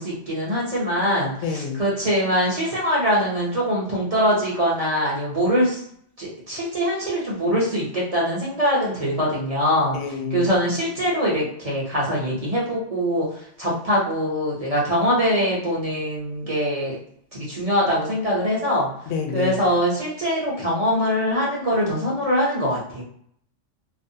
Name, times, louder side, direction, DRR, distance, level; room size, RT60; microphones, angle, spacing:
voice 1, 0.0-5.8 6.2-10.0 10.3-13.3 13.6-17.0 17.3-18.9 19.3-23.0, equal, 40° right, -5 dB, 0.6 m, -23 dB
voice 2, 1.4-1.8 9.9-10.5 19.1-19.5, left 5 dB, 85° left, 3 dB, 0.9 m, -27 dB
2.4 x 2.1 x 2.6 m, 0.67 s
omnidirectional pair, 1.2 m